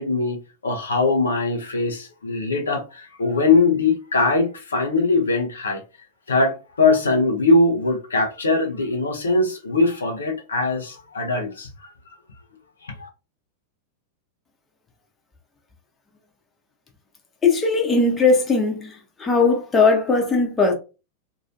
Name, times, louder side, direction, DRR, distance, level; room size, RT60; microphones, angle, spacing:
voice 1, 0.0-5.8 6.3-11.7 12.8-13.1, left 3 dB, 70° left, 0.7 m, -21 dB
voice 2, 17.4-20.7, left 3 dB, 20° left, 0.9 m, -19 dB
3.0 x 2.7 x 2.6 m
figure-of-eight pair, 90°, 0 cm